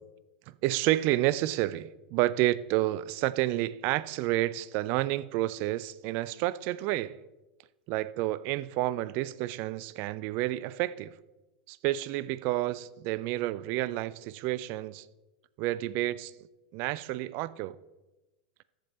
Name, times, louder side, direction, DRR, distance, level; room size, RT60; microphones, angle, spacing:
voice 1, 0.5-7.2 7.9-11.2 11.7-15.0 15.6-16.3 16.7-17.8, right 16 dB, 45° right, 0.4 m, -30 dB
14.0 x 5.3 x 4.3 m
figure-of-eight pair, 95°, 5 cm